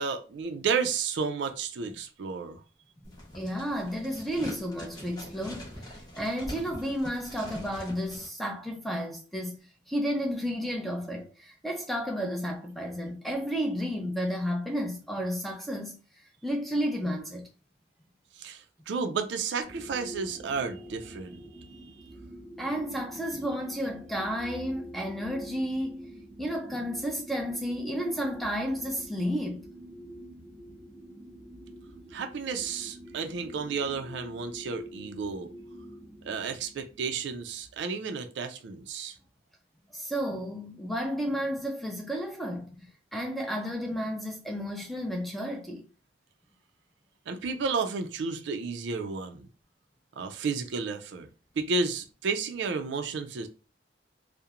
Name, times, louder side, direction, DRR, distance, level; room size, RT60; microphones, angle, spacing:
voice 1, 0.0-2.6 18.4-21.4 21.7-21.8 32.1-35.5 36.2-39.2 47.3-49.5 50.2-51.3 51.6-53.5, right 5 dB, 65° right, 0.3 m, -32 dB
sound 1, 3.0-8.3, left 1 dB, 20° left, 0.8 m, -43 dB
voice 2, 3.0-9.5 9.9-17.5 22.6-26.1 26.4-29.6 39.9-45.9, equal, ahead, 0.4 m, -32 dB
sound 2, 19.6-37.8, equal, 25° right, 0.8 m, -47 dB
2.9 x 2.0 x 2.4 m
head